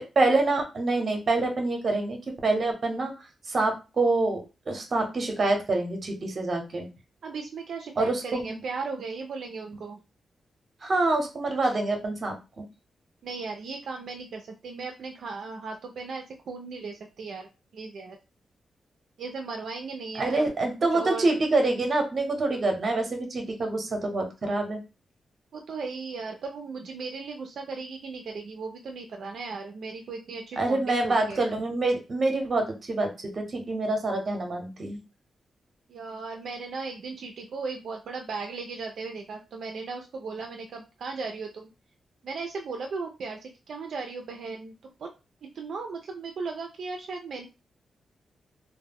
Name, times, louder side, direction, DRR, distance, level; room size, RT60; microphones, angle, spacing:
voice 1, 0.0-3.1 3.5-4.4 4.7-6.9 8.0-8.6 10.8-12.6 20.2-24.8 30.6-35.0, right 2 dB, 45° right, 4 dB, 0.8 m, -26 dB
voice 2, 7.2-10.0 13.2-17.5 17.7-18.2 19.2-20.5 20.8-21.4 25.5-31.4 35.9-41.7 42.2-44.7 45.0-45.1 45.5-47.5, right 4 dB, 75° right, 3 dB, 0.4 m, -36 dB
2.1 x 2.1 x 3.5 m, 0.29 s
cardioid pair, 95°, 0 cm